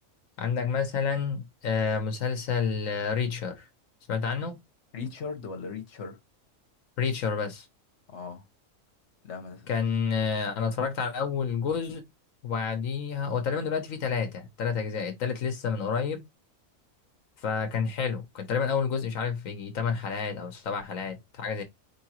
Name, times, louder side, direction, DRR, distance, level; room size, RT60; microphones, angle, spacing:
voice 1, 0.4-3.7 4.1-4.6 7.0-7.7 9.7-12.0 12.4-16.2 17.4-21.6, left 6 dB, 85° left, 1.2 m, -29 dB
voice 2, 4.9-6.2 8.1-8.4 9.2-9.7, left 5 dB, 60° left, 1.4 m, -38 dB
4.7 x 3.4 x 2.9 m
omnidirectional pair, 1.4 m